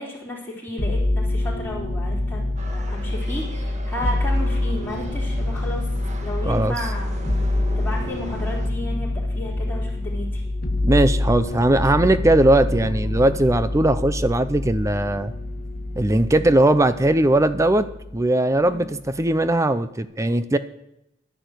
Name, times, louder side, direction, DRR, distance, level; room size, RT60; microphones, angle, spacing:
voice 1, 0.0-5.9 6.2-7.2 7.8-10.4 18.7-18.9, left 1 dB, 10° left, -11 dB, 3.9 m, -33 dB
sound 1, 0.8-18.2 18.5-19.3, left 1 dB, 50° left, 1.8 m, -26 dB
sound 2, 2.6-8.7, right 1 dB, 40° right, 1.8 m, -40 dB
voice 2, 10.8-15.3 16.0-17.9 18.1-20.6, right 1 dB, 15° right, 12 dB, 0.6 m, -19 dB
11.5 x 10.5 x 8.1 m, 0.82 s
head